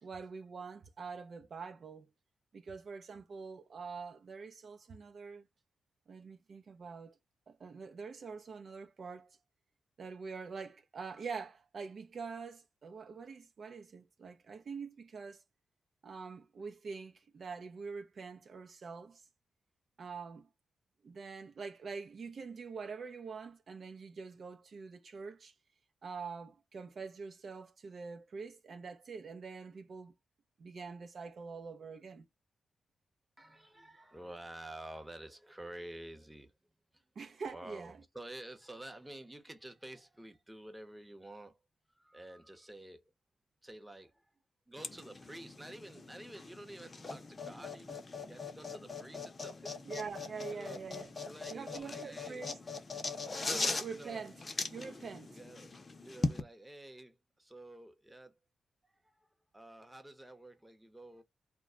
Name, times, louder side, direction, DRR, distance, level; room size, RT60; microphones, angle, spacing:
voice 1, 0.0-2.1 2.5-5.5 6.1-7.2 7.5-9.4 10.0-15.4 16.0-19.2 20.0-20.5 21.0-25.5 26.0-30.1 30.6-32.2 37.2-38.0 49.9-51.1 51.5-52.5 53.3-54.3 54.7-55.4, right 5 dB, 60° right, 0.5 m, -45 dB
voice 2, 33.4-36.5 36.9-37.1 37.5-41.6 41.9-43.1 43.6-44.3 44.7-49.9 50.4-50.9 51.2-52.5 53.9-54.3 55.3-55.7 56.0-58.3 58.8-59.3 59.5-61.2, right 1 dB, 15° right, 0.7 m, -50 dB
sound 1, 44.8-56.4, left 3 dB, 40° left, 0.6 m, -40 dB
2.2 x 2.0 x 3.6 m
cardioid pair, 60°, 0 cm